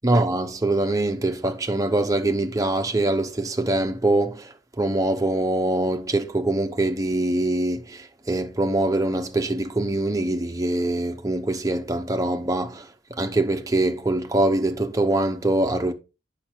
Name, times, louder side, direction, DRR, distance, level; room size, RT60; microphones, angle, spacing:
voice 1, 0.0-15.9, right 1 dB, 20° right, 0.7 m, -24 dB
8.5 x 5.7 x 4.4 m
head